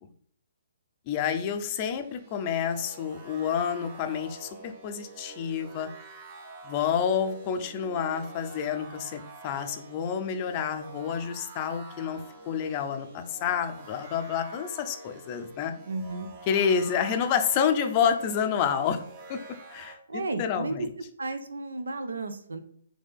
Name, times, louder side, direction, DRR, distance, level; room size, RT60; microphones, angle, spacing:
voice 1, 1.1-5.9 6.6-12.2 12.5-15.7 16.5-19.0 19.3-19.4 19.7-20.0 20.4-20.9, left 7 dB, 35° left, 7 dB, 0.5 m, -28 dB
sound 1, 2.0-20.0, right 3 dB, 40° right, 1.0 m, -47 dB
voice 2, 15.9-16.3 20.1-20.9 21.2-22.6, right 2 dB, 80° right, 9 dB, 0.6 m, -33 dB
4.0 x 2.9 x 3.6 m, 0.63 s
hypercardioid pair, 135°, 0 cm